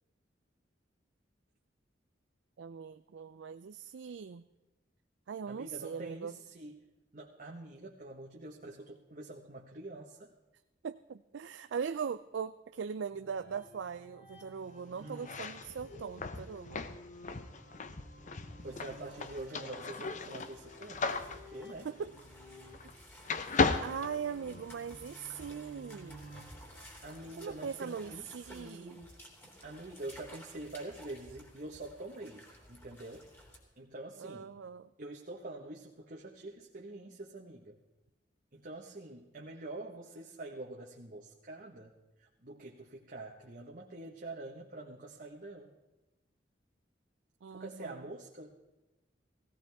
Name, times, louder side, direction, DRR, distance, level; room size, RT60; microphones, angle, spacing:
voice 1, 2.6-4.4 5.3-6.3 10.8-16.9 21.8-22.1 23.8-26.3 27.4-29.0 34.2-34.9 47.4-48.0, right 6 dB, 85° right, 11 dB, 0.4 m, -40 dB
voice 2, 5.5-6.8 7.1-10.3 14.9-15.3 18.6-21.9 27.0-29.1 29.6-33.3 33.8-34.5 35.0-37.8 38.5-41.9 42.2-45.7 47.5-48.5, right 2 dB, 50° right, -1 dB, 1.3 m, -46 dB
sound 1, 13.1-28.1, equal, 65° left, 3.1 m, -55 dB
sound 2, 15.1-23.0 23.2-24.9, left 4 dB, 45° left, 0.7 m, -36 dB
sound 3, 18.6-33.6, equal, 15° left, 3.1 m, -55 dB
17.0 x 17.0 x 3.5 m, 1.1 s
head